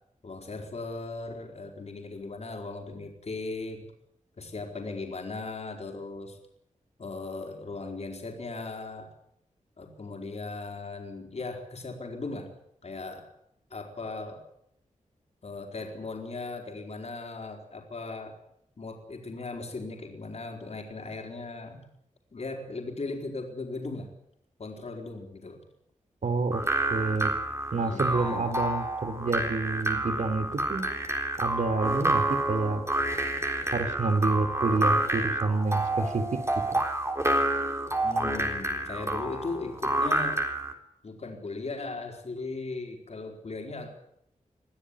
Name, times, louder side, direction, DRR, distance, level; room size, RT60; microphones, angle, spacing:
voice 1, 0.2-3.8 4.4-6.4 7.0-9.1 9.8-12.5 12.8-13.3 13.7-14.4 15.4-18.3 18.8-21.8 22.3-24.1 24.6-25.6 27.7-28.6 38.0-40.4 41.0-43.9, left 3 dB, 55° left, 3 dB, 4.5 m, -38 dB
voice 2, 26.2-26.6 26.9-27.3 27.7-30.8 31.4-32.8 33.7-36.2 36.7-36.8, right 3 dB, 75° right, 9 dB, 3.2 m, -28 dB
sound 1, 26.5-40.7, right 1 dB, 20° right, 3.8 m, -28 dB
23.5 x 14.5 x 10.0 m, 0.75 s
wide cardioid pair, 85°, 13 cm